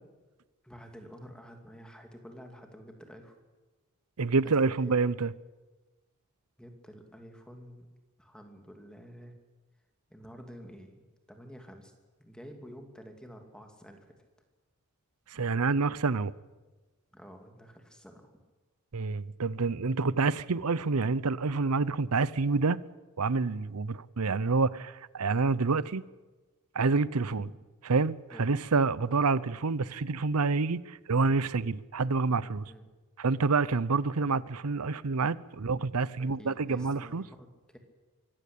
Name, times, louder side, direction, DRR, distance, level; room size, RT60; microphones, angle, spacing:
voice 1, 0.6-3.4 4.4-5.0 6.6-7.9 8.2-9.3 10.1-10.9 11.3-11.9 12.2-14.2 17.1-18.3 27.3-27.6 28.3-28.5 32.7-32.8 36.2-37.8, equal, 5° left, 2.7 m, -49 dB
voice 2, 4.2-5.3 15.3-16.3 18.9-22.8 23.2-26.0 26.7-27.5 27.9-32.7 33.2-37.2, right 4 dB, 80° right, 0.7 m, -28 dB
24.5 x 15.0 x 8.6 m
head